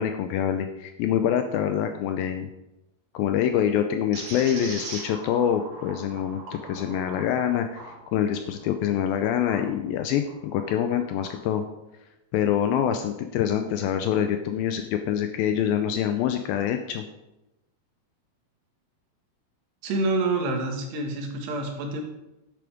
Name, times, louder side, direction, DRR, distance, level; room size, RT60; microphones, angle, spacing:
voice 1, 0.0-2.5 3.1-11.6 12.3-17.0, left 9 dB, 80° left, 7 dB, 2.2 m, -25 dB
sound 1, 4.1-9.7 10.2-11.4, right 3 dB, 55° right, 3.5 m, -41 dB
voice 2, 19.8-22.0, right 2 dB, 85° right, 3 dB, 3.7 m, -27 dB
10.5 x 8.6 x 5.0 m, 0.96 s
omnidirectional pair, 4.7 m